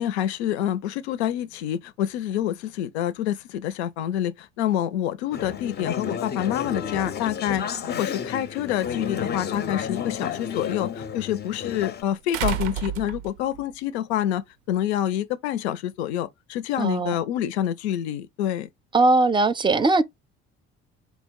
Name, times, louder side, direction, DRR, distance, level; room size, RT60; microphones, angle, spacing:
voice 1, 0.0-18.7, left 11 dB, 80° left, 0.5 m, -27 dB
Conversation / Chatter, 5.3-12.0, left 7 dB, 30° left, 0.5 m, -31 dB
sound 1, 9.1-9.2 12.3-13.6 15.0-15.1, right 9 dB, 85° right, 0.5 m, -29 dB
voice 2, 16.8-17.2 18.9-20.0, right 3 dB, 15° right, 0.5 m, -20 dB
4.0 x 2.7 x 4.5 m
hypercardioid pair, 55°, 32 cm